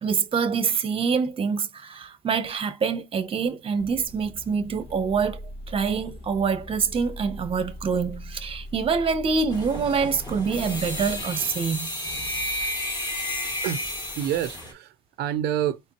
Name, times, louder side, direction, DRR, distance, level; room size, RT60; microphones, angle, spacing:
voice 1, 0.0-5.4 5.7-11.9, right 5 dB, 35° right, 0.8 m, -25 dB
sound 1, 3.8-11.2, equal, 75° left, 1.5 m, -40 dB
sound 2, 9.5-14.7, left 1 dB, 25° left, 2.4 m, -32 dB
voice 2, 13.4-13.8 14.2-15.8, right 11 dB, 80° right, 0.5 m, -28 dB
4.2 x 3.2 x 3.0 m
cardioid pair, 110°, 17 cm